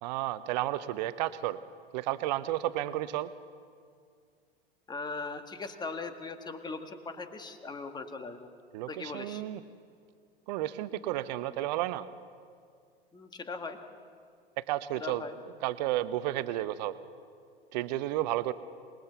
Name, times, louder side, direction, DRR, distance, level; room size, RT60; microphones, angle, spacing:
voice 1, 0.0-1.6 1.9-3.3 8.7-9.6 10.5-12.1 14.6-15.2 15.6-17.0 17.7-18.5, right 14 dB, 45° right, 14 dB, 1.0 m, -32 dB
voice 2, 4.9-8.5 8.9-9.4 13.1-13.8 15.0-15.3, left 4 dB, 15° left, 7 dB, 1.8 m, -39 dB
26.5 x 21.0 x 7.0 m, 2.2 s
figure-of-eight pair, 95°, 30 cm